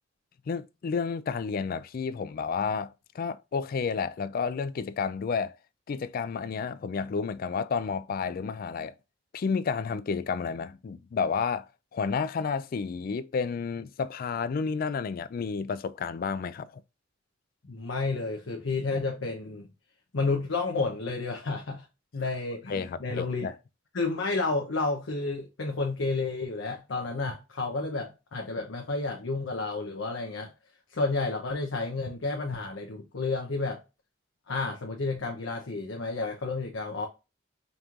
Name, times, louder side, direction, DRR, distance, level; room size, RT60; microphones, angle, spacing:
voice 1, 0.5-5.5 5.9-8.9 9.3-11.7 11.9-16.8 22.7-23.5, left 5 dB, 50° left, 0.3 m, -31 dB
voice 2, 17.7-19.7 20.1-21.8 22.1-23.5 23.9-30.5 30.9-33.8 34.5-37.1, left 3 dB, 90° left, 0.7 m, -31 dB
5.3 x 3.0 x 2.4 m
head